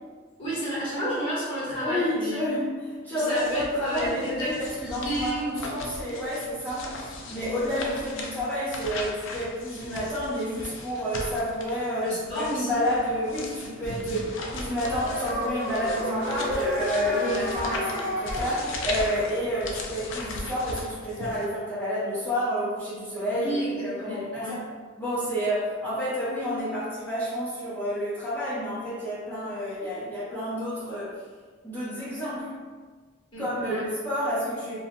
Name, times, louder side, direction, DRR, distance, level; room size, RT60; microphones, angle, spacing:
voice 1, 0.4-2.4 3.1-5.7 7.1-7.2 12.0-12.8 14.0-14.2 23.3-24.6 33.3-33.8, equal, 25° left, -10 dB, 1.2 m, -31 dB
voice 2, 1.8-7.0 7.3-12.1 12.3-14.2 14.5-23.5 23.8-24.6 25.0-31.1 31.6-32.5 33.4-34.8, equal, 10° left, -13 dB, 0.6 m, -29 dB
sound 1, 3.3-21.5, left 2 dB, 70° left, 0.4 m, -38 dB
sound 2, 14.8-20.0, equal, 50° right, 0.7 m, -32 dB
2.6 x 2.2 x 2.6 m, 1.5 s
head